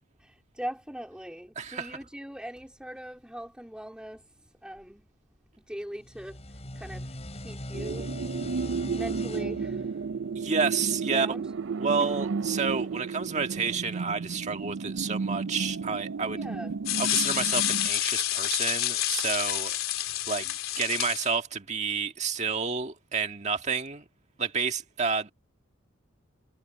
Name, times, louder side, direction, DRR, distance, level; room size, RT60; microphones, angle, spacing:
voice 1, 0.2-5.1 5.6-8.1 8.5-10.1 11.1-11.5 12.0-12.1 16.3-16.8, equal, 5° right, 3.6 m, -41 dB
voice 2, 1.6-2.0 10.3-11.3 11.8-16.4 17.0-19.8 20.3-24.0 24.4-25.3, right 5 dB, 35° right, 1.7 m, -30 dB
sound 1, 6.0-11.3, left 1 dB, 30° left, 6.6 m, -41 dB
sound 2, 7.7-17.9, right 5 dB, 60° right, 0.5 m, -33 dB
sound 3, 16.9-21.3, left 13 dB, 80° left, 3.3 m, -28 dB
head